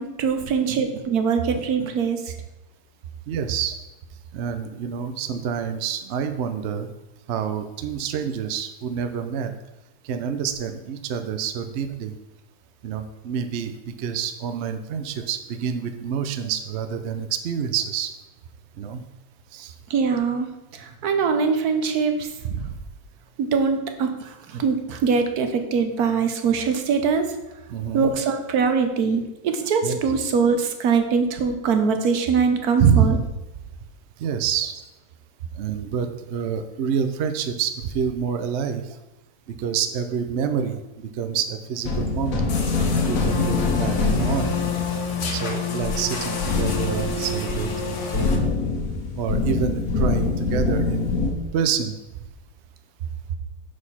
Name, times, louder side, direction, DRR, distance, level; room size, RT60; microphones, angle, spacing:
voice 1, 0.0-2.3 19.9-20.5 20.7-22.3 23.4-27.3 27.9-33.2, right 5 dB, 80° right, 6 dB, 1.3 m, -22 dB
voice 2, 3.3-3.8 4.3-6.9 7.3-9.5 10.0-12.2 12.8-18.1 18.8-19.0 19.5-19.7 22.4-22.8 27.7-28.1 29.8-30.0 32.8-33.1 34.2-34.8 35.5-39.0 39.5-42.5 43.1-44.6 45.3-48.5 49.2-51.1 51.5-51.9, right 7 dB, 60° right, 8 dB, 0.8 m, -27 dB
sound 1, 41.8-51.3, left 3 dB, 65° left, 1.5 m, -25 dB
sound 2, 42.5-48.4, left 4 dB, 85° left, 1.6 m, -29 dB
6.3 x 5.0 x 5.6 m, 0.97 s
omnidirectional pair, 1.6 m